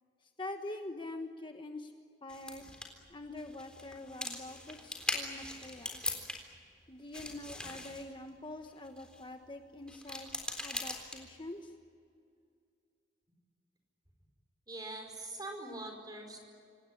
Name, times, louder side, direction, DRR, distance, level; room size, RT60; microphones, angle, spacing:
voice 1, 0.2-1.9 2.2-2.6 3.1-6.2 6.9-10.3 10.6-11.7, left 2 dB, 25° left, 5 dB, 1.2 m, -45 dB
sound 1, 2.3-6.7 6.9-9.3 9.8-11.5, left 1 dB, 5° left, 3.8 m, -41 dB
voice 2, 14.7-16.4, right 2 dB, 20° right, 4 dB, 4.9 m, -43 dB
26.5 x 18.5 x 9.8 m, 2.3 s
head